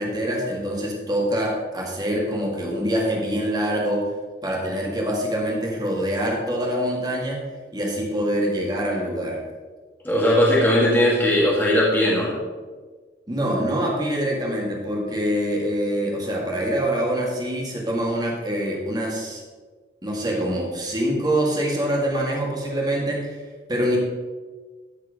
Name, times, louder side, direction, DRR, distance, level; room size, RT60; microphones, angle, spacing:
voice 1, 0.0-4.1 4.4-7.5 7.7-9.4 13.3-19.4 20.0-23.4 23.7-24.0, equal, 25° right, -2 dB, 1.9 m, -25 dB
voice 2, 10.0-12.3, left 1 dB, 10° left, -6 dB, 1.9 m, -18 dB
13.5 x 4.7 x 5.0 m, 1.4 s
head